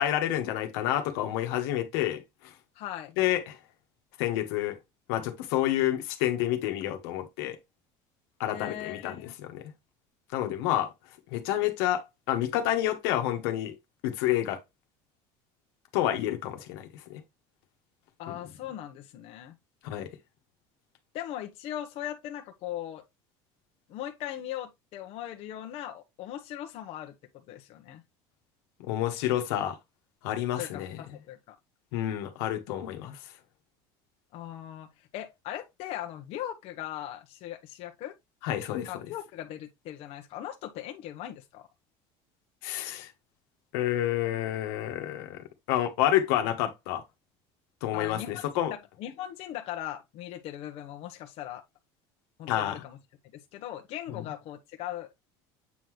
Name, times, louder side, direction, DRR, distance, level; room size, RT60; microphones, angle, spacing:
voice 1, 0.0-2.5 3.2-3.6 4.2-4.8 5.1-7.6 8.4-9.2 9.4-9.7 10.3-10.9 11.3-13.7 14.0-14.6 15.9-17.2 18.3-18.4 19.8-20.1 28.8-29.8 30.2-31.0 31.9-33.2 38.4-39.0 42.6-43.1 43.7-47.0 47.8-48.7 52.5-52.7 54.1-54.2, left 12 dB, 85° left, 1.5 m, -29 dB
voice 2, 2.7-3.1 8.5-9.4 18.2-19.5 21.1-23.0 23.9-27.1 27.5-28.0 30.6-31.5 34.3-38.2 38.9-41.7 47.9-48.4 48.7-51.6 52.4-53.0 53.3-55.1, left 12 dB, 55° left, 1.1 m, -39 dB
8.4 x 4.0 x 3.2 m
cardioid pair, 145°, 12 cm